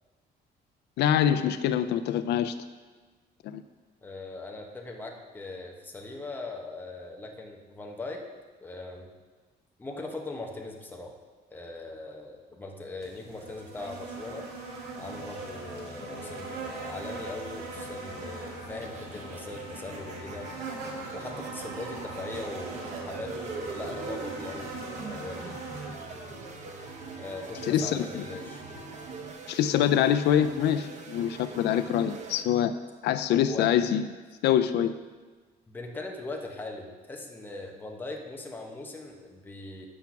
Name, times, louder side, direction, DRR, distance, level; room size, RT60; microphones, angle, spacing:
voice 1, 1.0-2.5 3.4-3.6 27.7-28.2 29.5-32.7 33.0-34.0 34.4-34.9, left 10 dB, 80° left, 10 dB, 0.4 m, -25 dB
voice 2, 4.0-8.3 8.6-9.1 9.8-11.1 11.5-14.5 15.0-20.5 21.1-25.6 27.2-28.6 33.5-33.7 35.7-39.9, left 2 dB, 10° left, 1 dB, 0.9 m, -40 dB
sound 1, 13.0-25.9, right 3 dB, 80° right, 1.8 m, -40 dB
sound 2, 14.9-29.3, left 4 dB, 55° left, 0.8 m, -48 dB
sound 3, 18.8-32.4, right 5 dB, 45° right, 0.8 m, -43 dB
8.3 x 5.9 x 5.8 m, 1.4 s
cardioid pair, 175°, 17 cm